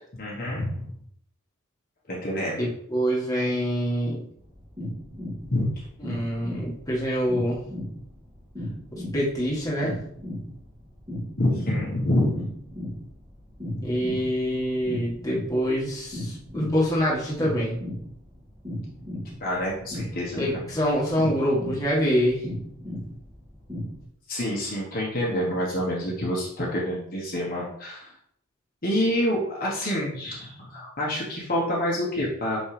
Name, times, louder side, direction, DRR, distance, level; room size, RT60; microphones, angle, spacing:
voice 1, 0.2-0.8 2.1-2.6 5.5-5.8 11.4-12.3 19.4-20.7 24.3-28.1 28.8-32.6, left 1 dB, 40° left, -4 dB, 1.2 m, -27 dB
voice 2, 2.6-4.3 6.0-7.6 9.1-9.9 13.8-17.8 20.4-22.4, equal, 15° left, -5 dB, 1.6 m, -25 dB
sound 1, 4.4-24.0, left 1 dB, 20° right, 2.1 m, -36 dB
5.8 x 5.5 x 3.3 m, 0.69 s
head